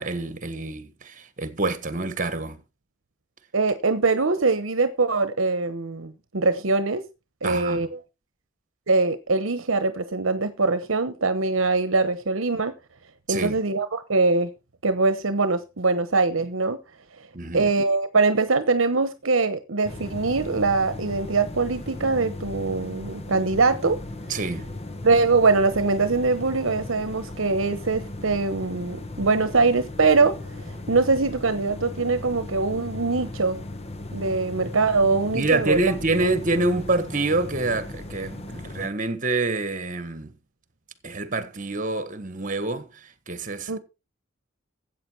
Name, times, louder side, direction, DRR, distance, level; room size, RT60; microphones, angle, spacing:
voice 1, 0.0-2.6 7.4-7.9 13.3-13.6 17.3-17.7 24.3-24.7 35.3-40.3 41.0-42.9 43.3-43.8, right 2 dB, 40° right, 1.6 m, -26 dB
voice 2, 3.5-7.0 7.4-8.0 8.9-12.7 13.3-14.5 14.8-16.8 17.5-24.0 25.0-30.3 30.9-33.6 34.1-35.8 43.7-43.8, right 3 dB, 70° right, 1.0 m, -22 dB
sound 1, 19.8-38.9, left 2 dB, 30° left, 1.4 m, -37 dB
13.5 x 8.4 x 4.6 m
head